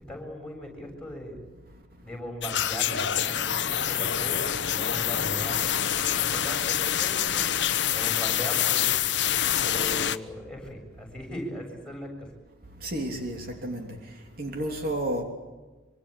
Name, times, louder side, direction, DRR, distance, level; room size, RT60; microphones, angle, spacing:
voice 1, 0.1-1.4 2.0-7.5 7.9-9.0 9.4-12.3, equal, 5° left, 7.6 m, -39 dB
sound 1, 2.4-10.2, left 10 dB, 60° left, 1.1 m, -26 dB
voice 2, 12.8-13.9 14.4-15.2, right 1 dB, 45° right, 3.1 m, -31 dB
25.5 x 25.5 x 8.5 m
head